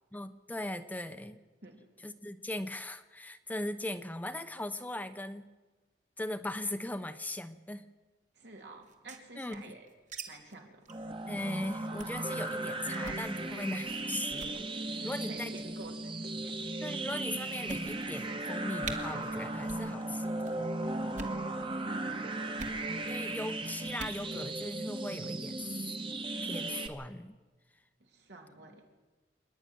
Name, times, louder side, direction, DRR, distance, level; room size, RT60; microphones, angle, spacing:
voice 1, 0.1-1.4 2.0-5.5 6.2-7.8 9.4-9.8 11.3-15.5 16.8-20.6 23.1-25.9 26.4-27.4, left 1 dB, 10° left, 9 dB, 0.8 m, -39 dB
voice 2, 8.3-9.9 10.3-10.9 14.9-16.7 21.9-22.5 28.0-28.9, right 2 dB, 75° right, 2 dB, 3.4 m, -50 dB
sound 1, 8.8-10.2 10.5-10.6 10.9-11.1 11.4-11.6 12.0-12.2 12.9-13.3 13.9-14.0 14.3-14.6 15.5-15.9 16.6-16.7 17.1-17.2 17.7-18.2 18.5-18.6 18.8-19.0 19.6-19.9 20.1-20.5 21.0-21.4 22.6-22.8 23.9-24.2, right 3 dB, 45° right, 2.0 m, -43 dB
sound 2, 10.9-26.9, right 2 dB, 30° right, 1.4 m, -36 dB
27.0 x 10.5 x 9.3 m, 1.3 s
head